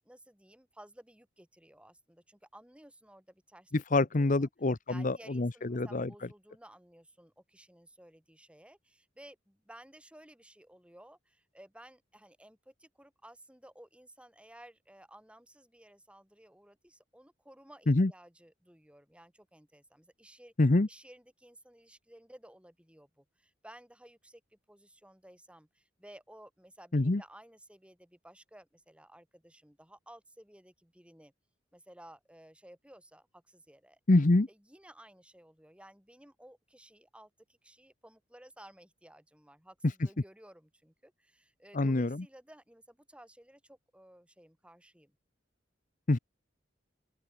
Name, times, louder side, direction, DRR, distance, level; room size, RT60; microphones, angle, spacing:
voice 1, 0.0-4.5 4.9-20.5 20.9-31.3 31.7-34.0 34.5-45.2, right 1 dB, 5° right, 5.8 m, -56 dB
voice 2, 3.7-6.1 17.9-18.1 20.6-20.9 26.9-27.2 34.1-34.5 41.7-42.2 46.1-46.2, left 2 dB, 45° left, 0.8 m, -26 dB
open air
head